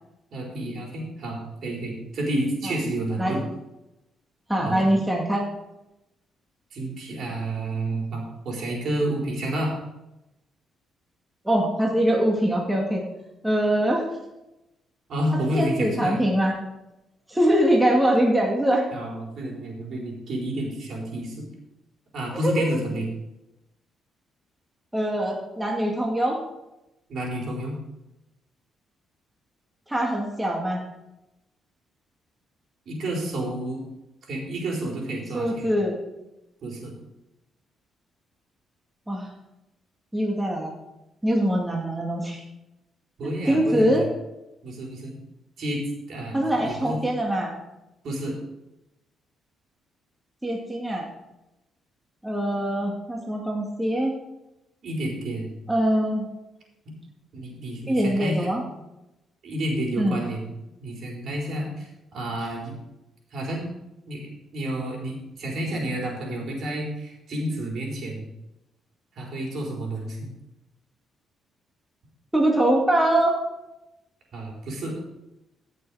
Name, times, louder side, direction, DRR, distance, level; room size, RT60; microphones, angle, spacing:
voice 1, 0.3-3.4 4.6-4.8 6.7-9.7 15.1-16.2 18.9-21.4 22.1-23.1 27.1-27.8 32.9-33.8 34.3-35.7 36.6-36.9 43.2-44.0 44.6-45.2 45.6-45.8 46.1-47.0 48.0-48.4 54.8-55.6 56.8-56.9 57.3-58.5 59.4-60.5 60.8-62.7 63.3-63.7 64.1-68.3 69.1-70.3 74.3-75.0, right 1 dB, 60° right, -2 dB, 4.4 m, -30 dB
voice 2, 4.5-5.4 11.4-13.0 13.4-14.1 15.5-16.5 17.3-18.9 22.4-22.7 24.9-26.4 29.9-30.8 35.3-36.0 39.1-39.3 40.1-40.7 41.2-42.4 43.5-44.0 46.3-47.6 50.4-51.1 52.2-54.1 55.7-56.3 57.9-58.6 60.0-60.3 72.3-73.4, right 1 dB, 10° right, -1 dB, 2.2 m, -23 dB
15.5 x 6.7 x 4.9 m, 0.94 s
cardioid pair, 90°, 0 cm